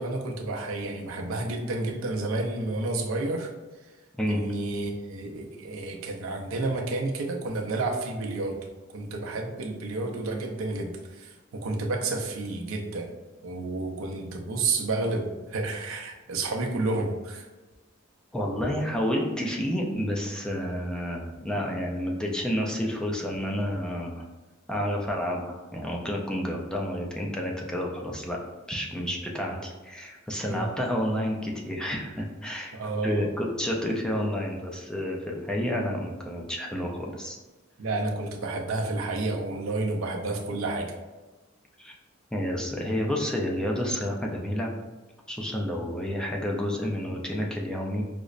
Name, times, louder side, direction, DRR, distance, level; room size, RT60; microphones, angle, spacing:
voice 1, 0.0-3.5 4.2-8.6 8.9-13.1 13.4-17.5 30.4-30.7 32.7-33.3 37.8-40.9, right 2 dB, 80° right, 1 dB, 0.5 m, -30 dB
voice 2, 18.3-24.3 24.7-28.4 28.7-32.7 33.0-37.4 41.8-41.9 42.3-44.8 45.3-48.0, equal, 5° left, -1 dB, 0.3 m, -30 dB
5.0 x 2.0 x 2.4 m, 1.2 s
head